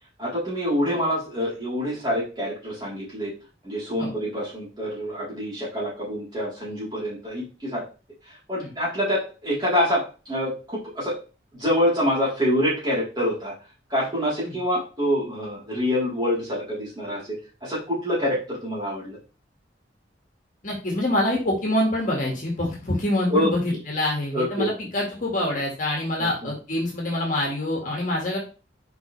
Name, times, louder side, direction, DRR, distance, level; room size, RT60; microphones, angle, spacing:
voice 1, 0.2-3.3 3.6-7.8 8.3-11.1 11.5-13.5 13.9-19.2 23.3-23.5 24.3-24.7 26.2-26.3, equal, 25° right, -7 dB, 3.9 m, -26 dB
voice 2, 20.6-28.4, left 1 dB, 45° left, -2 dB, 2.0 m, -26 dB
6.0 x 5.2 x 3.4 m, 0.33 s
head